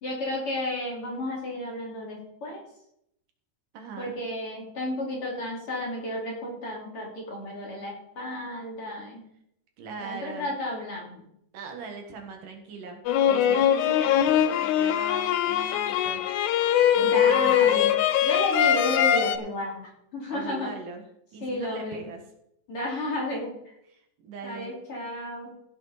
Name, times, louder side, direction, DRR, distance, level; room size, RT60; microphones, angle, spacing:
voice 1, 0.0-2.6 4.0-9.2 10.0-11.2 17.0-17.9 18.2-20.7 21.4-22.1 22.7-23.5 24.4-25.5, left 1 dB, 40° left, -2 dB, 3.5 m, -32 dB
voice 2, 3.7-4.2 9.8-10.5 11.5-16.2 16.9-17.8 20.3-21.0 21.3-22.2 23.9-24.7, right 4 dB, 70° right, 3 dB, 3.1 m, -40 dB
sound 1, 13.1-19.4, left 10 dB, 80° left, 1.7 m, -22 dB
16.0 x 7.3 x 4.2 m, 0.76 s
omnidirectional pair, 4.0 m